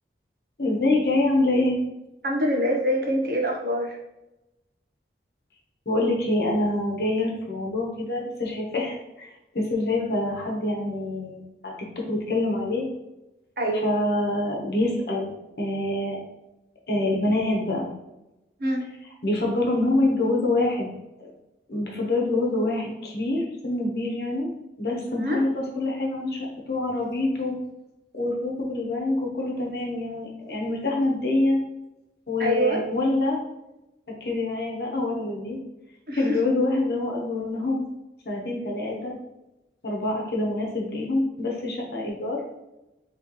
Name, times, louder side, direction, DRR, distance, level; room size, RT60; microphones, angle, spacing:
voice 1, 0.6-1.8 5.9-11.7 12.1-12.9 13.8-15.3 15.6-16.2 16.9-17.9 19.2-20.9 21.2-21.3 21.7-24.5 24.8-27.6 28.1-31.6 32.3-33.4 34.2-35.6 36.1-37.8 38.2-39.1 39.8-42.4, left 2 dB, 65° left, -1 dB, 1.0 m, -26 dB
voice 2, 2.2-4.0 10.0-10.1 13.6-13.8 18.6-18.8 25.1-25.5 32.4-32.8 36.1-36.4, equal, 55° right, 0 dB, 0.8 m, -25 dB
4.4 x 3.1 x 3.0 m, 0.94 s
head